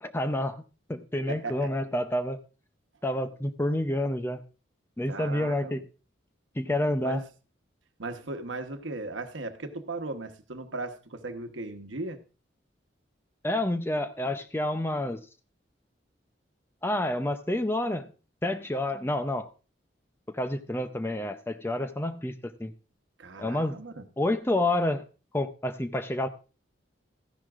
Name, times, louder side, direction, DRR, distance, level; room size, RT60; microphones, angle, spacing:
voice 1, 0.0-0.6 0.9-2.4 3.0-4.4 5.0-5.8 6.6-7.2 13.4-15.2 16.8-18.0 18.4-19.5 20.3-22.7 23.4-23.8 24.2-25.0 25.3-26.3, left 1 dB, 10° left, 10 dB, 0.5 m, -29 dB
voice 2, 1.3-1.7 5.1-5.8 7.0-7.3 8.0-12.2 23.2-24.0, right 2 dB, 85° right, 7 dB, 1.1 m, -37 dB
14.0 x 11.0 x 2.5 m, 0.33 s
head